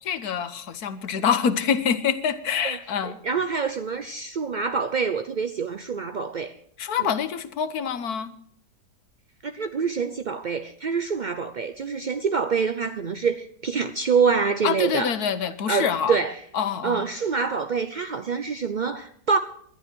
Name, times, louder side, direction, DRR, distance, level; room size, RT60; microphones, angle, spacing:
voice 1, 0.0-3.2 6.8-8.3 14.6-16.2 16.5-17.0, left 7 dB, 65° left, 12 dB, 1.5 m, -26 dB
voice 2, 3.2-6.6 7.0-7.1 9.4-15.1 15.7-16.4 16.8-19.4, right 5 dB, 60° right, 9 dB, 0.4 m, -26 dB
20.0 x 12.0 x 4.5 m, 0.67 s
omnidirectional pair, 1.8 m